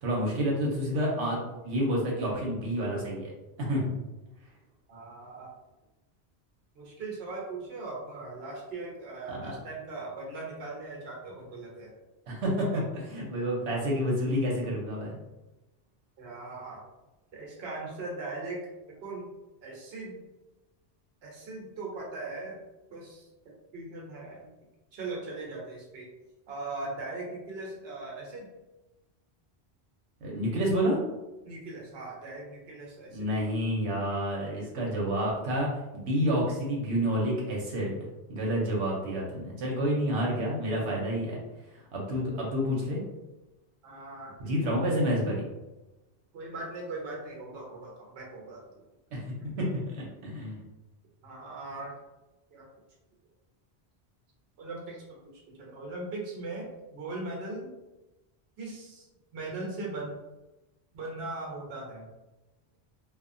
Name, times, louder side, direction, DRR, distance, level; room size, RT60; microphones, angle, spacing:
voice 1, 0.0-3.3 3.6-3.9 9.3-9.5 12.3-15.2 30.2-31.0 33.1-35.7 35.9-38.0 38.3-41.4 41.9-43.0 44.4-45.4 49.1-49.2 49.6-50.6, equal, 90° right, -4 dB, 1.0 m, -29 dB
voice 2, 4.9-5.5 6.7-11.9 16.2-16.9 17.3-18.6 18.9-19.3 19.6-20.2 21.2-22.6 22.9-24.5 24.9-26.1 26.5-28.5 31.4-33.3 43.8-44.5 46.3-48.8 49.4-49.5 51.2-51.9 52.5-52.7 54.6-57.7 58.6-59.1 59.3-60.2 60.9-62.1, right 2 dB, 70° right, -2 dB, 1.0 m, -39 dB
2.8 x 2.3 x 2.5 m, 1.0 s
omnidirectional pair, 1.1 m